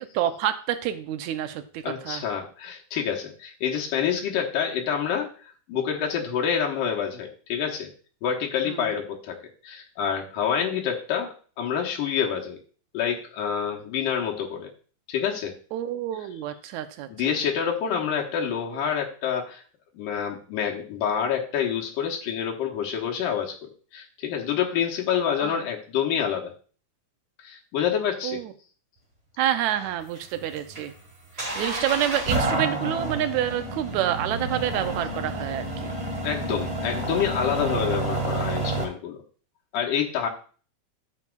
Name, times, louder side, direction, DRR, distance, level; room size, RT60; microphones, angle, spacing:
voice 1, 0.0-2.3 8.7-8.9 15.7-17.4 25.4-25.6 28.2-28.5 29.4-30.9 31.4-35.9, right 11 dB, 75° right, 9 dB, 1.9 m, -28 dB
voice 2, 1.8-5.3 5.7-7.9 8.2-9.4 9.6-12.6 12.9-14.7 15.1-15.5 17.1-19.6 19.9-23.5 23.9-26.5 27.4-28.4 36.2-39.2 39.7-40.3, left 8 dB, 85° left, 0 dB, 2.8 m, -27 dB
sound 1, 29.7-38.8, right 2 dB, 25° right, 0.7 m, -30 dB
11.0 x 7.1 x 2.4 m, 0.41 s
omnidirectional pair, 3.7 m